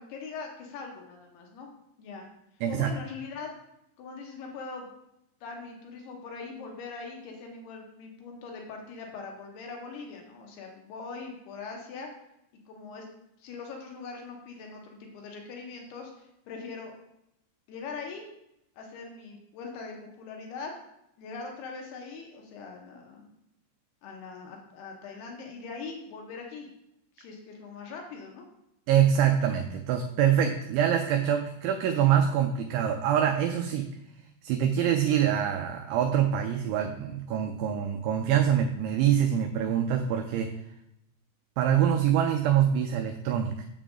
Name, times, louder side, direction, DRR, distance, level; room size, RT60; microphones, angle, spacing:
voice 1, 0.0-1.7 2.0-2.3 2.7-3.5 4.0-4.9 5.4-12.1 12.7-13.1 13.4-16.9 17.7-18.3 18.8-20.7 21.2-23.3 24.0-26.7 27.2-28.5, left 4 dB, 75° left, 1 dB, 2.4 m, -41 dB
voice 2, 28.9-33.9 34.4-40.6 41.6-43.7, right 9 dB, 85° right, 5 dB, 2.6 m, -25 dB
7.4 x 7.0 x 3.7 m, 0.81 s
omnidirectional pair, 5.8 m